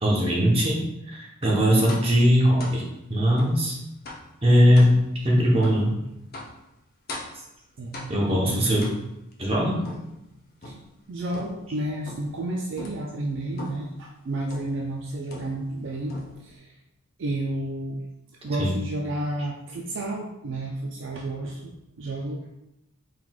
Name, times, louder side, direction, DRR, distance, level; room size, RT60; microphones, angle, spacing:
voice 1, 0.0-2.8 3.1-3.8 4.4-4.9 5.2-5.9 8.1-8.8 9.4-9.8 18.6-18.8, equal, 25° right, -3 dB, 0.9 m, -20 dB
sound 1, 1.9-2.2 2.6-2.8 3.4-3.6 4.1-4.3 4.8-5.0 5.6-5.9 6.3-6.6 7.1-7.5 7.9-8.3 8.8-9.3 9.8-10.9 11.3-11.7 12.1-12.4 12.8-13.1 13.6-13.9 14.5-14.8 15.3-15.8 16.1-16.6, left 1 dB, 45° left, 0.7 m, -40 dB
voice 2, 7.8-9.1 10.6-10.8 11.1-16.7 17.2-18.0 18.4-22.5, right 1 dB, 55° right, 0 dB, 0.4 m, -31 dB
4.5 x 4.0 x 2.3 m, 0.86 s
head